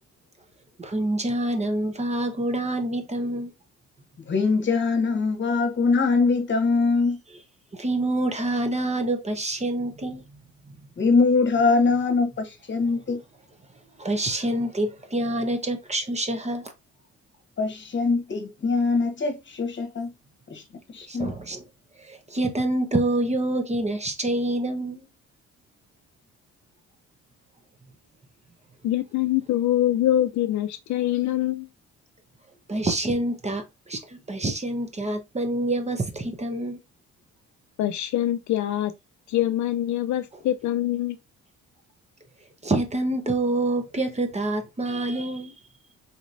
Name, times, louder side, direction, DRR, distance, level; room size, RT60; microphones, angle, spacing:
voice 1, 0.8-3.5 7.7-10.2 10.7-10.8 14.0-16.7 21.1-21.6 22.0-25.1 32.7-36.8 42.6-45.5, right 1 dB, 20° right, 0.8 m, -27 dB
voice 2, 4.2-7.2 11.0-13.2 17.6-20.1 20.5-20.6 20.9-21.3, left 4 dB, 40° left, 1.2 m, -23 dB
voice 3, 28.8-31.7 37.8-38.9 39.3-41.2, left 13 dB, 70° left, 0.5 m, -24 dB
4.2 x 3.0 x 2.5 m
cardioid pair, 90°, 30 cm